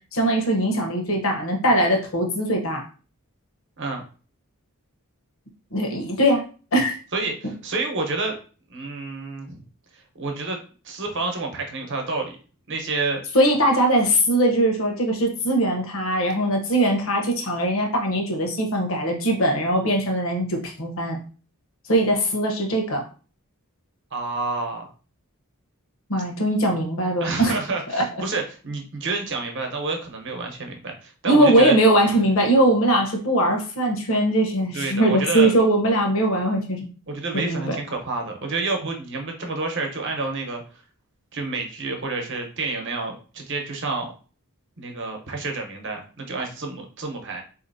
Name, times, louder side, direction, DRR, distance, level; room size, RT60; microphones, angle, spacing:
voice 1, 0.1-2.8 5.7-6.4 6.7-6.9 13.3-21.2 21.9-23.0 26.1-27.5 27.9-28.1 31.3-36.9 37.3-37.8, right 1 dB, 65° left, 2 dB, 0.9 m, -21 dB
voice 2, 7.1-8.3 8.7-9.6 10.2-10.6 10.8-12.3 12.7-13.2 24.1-24.9 27.2-31.7 34.7-35.5 37.1-40.6 41.3-44.1 44.8-47.4, right 3 dB, 55° right, 3 dB, 0.9 m, -29 dB
4.1 x 2.7 x 2.6 m, 0.37 s
head